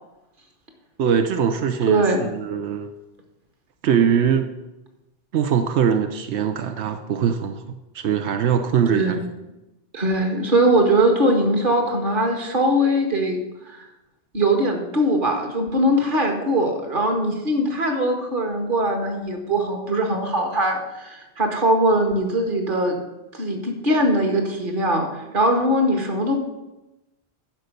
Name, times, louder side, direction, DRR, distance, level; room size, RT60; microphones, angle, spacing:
voice 1, 1.0-2.9 3.8-4.5 5.3-7.6 7.9-9.2, right 7 dB, 90° right, 6 dB, 1.0 m, -21 dB
voice 2, 1.9-2.3 8.9-9.3 9.9-13.4 13.6-13.8 14.3-22.9 23.3-26.4, right 1 dB, 50° right, 3 dB, 1.7 m, -21 dB
10.5 x 5.4 x 6.6 m, 0.99 s
omnidirectional pair, 1.1 m